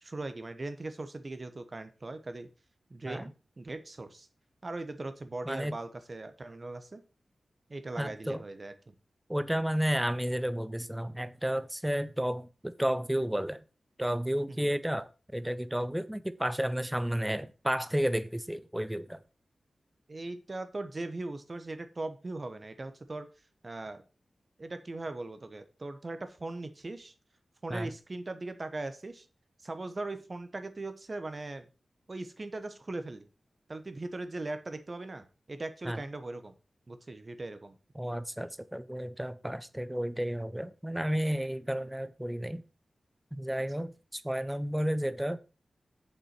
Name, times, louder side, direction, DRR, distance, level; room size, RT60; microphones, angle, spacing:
voice 1, 0.0-2.5 2.9-4.3 4.6-7.0 7.7-8.9 14.5-14.7 20.1-23.3 23.6-24.0 24.6-27.1 27.6-29.3 29.6-31.7 32.1-33.3 33.7-36.5 36.9-37.7 43.5-43.9, right 2 dB, 35° right, 1.1 m, -39 dB
voice 2, 5.5-5.8 8.0-8.4 9.3-13.6 14.0-19.2 27.7-27.9 35.8-36.0 38.0-42.6 43.3-45.4, equal, 5° right, 0.7 m, -32 dB
7.2 x 5.7 x 6.0 m
wide cardioid pair, 105°, 0 cm